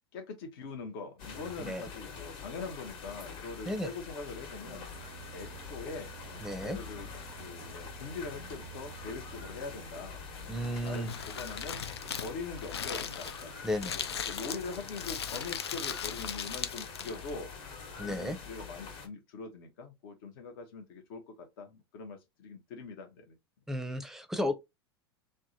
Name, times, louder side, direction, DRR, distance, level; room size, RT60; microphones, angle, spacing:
voice 1, 0.1-4.8 5.3-7.1 7.4-10.2 10.6-11.8 12.2-13.5 14.0-17.5 18.0-23.4, left 4 dB, 60° left, 0.8 m, -43 dB
sound 1, 1.2-19.1, left 5 dB, 40° left, 1.2 m, -45 dB
sound 2, 4.4-13.2, right 11 dB, 50° right, 0.4 m, -52 dB
voice 2, 6.4-6.8 10.5-11.1 13.6-14.0 18.0-18.4 23.7-24.5, left 1 dB, 5° right, 0.6 m, -33 dB
Crumpling crinkling, 10.5-17.3, left 7 dB, 85° left, 0.4 m, -38 dB
3.4 x 2.1 x 2.8 m
hypercardioid pair, 90°, 13 cm